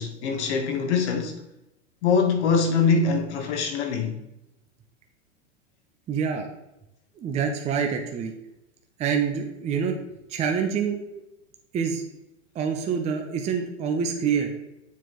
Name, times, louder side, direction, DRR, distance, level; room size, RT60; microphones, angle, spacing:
voice 1, 0.0-1.4 2.0-4.2, left 5 dB, 65° left, 1.3 m, -23 dB
voice 2, 6.1-6.5 7.2-8.3 9.0-10.0 10.3-11.2 11.7-12.0 12.5-14.5, right 6 dB, 20° right, 0.5 m, -26 dB
7.2 x 4.3 x 3.0 m
hypercardioid pair, 120°, 37 cm